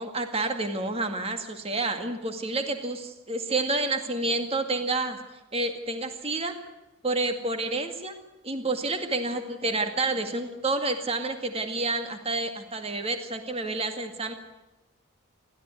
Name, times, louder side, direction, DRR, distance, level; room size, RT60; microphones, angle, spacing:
voice 1, 0.0-5.2 5.5-6.6 7.0-8.1 8.4-14.3, right 2 dB, 25° right, 6 dB, 2.1 m, -29 dB
28.5 x 13.5 x 9.5 m, 1.0 s
head